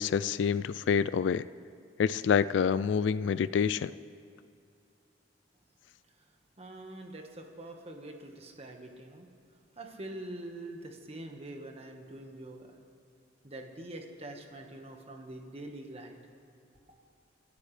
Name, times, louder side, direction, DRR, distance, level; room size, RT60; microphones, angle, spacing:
voice 1, 0.0-1.5 2.0-3.9, left 7 dB, 85° left, 16 dB, 0.3 m, -27 dB
voice 2, 6.6-9.3 9.8-12.7 13.4-16.2, right 1 dB, 35° right, 3 dB, 1.5 m, -44 dB
30.0 x 13.0 x 3.3 m, 2.4 s
head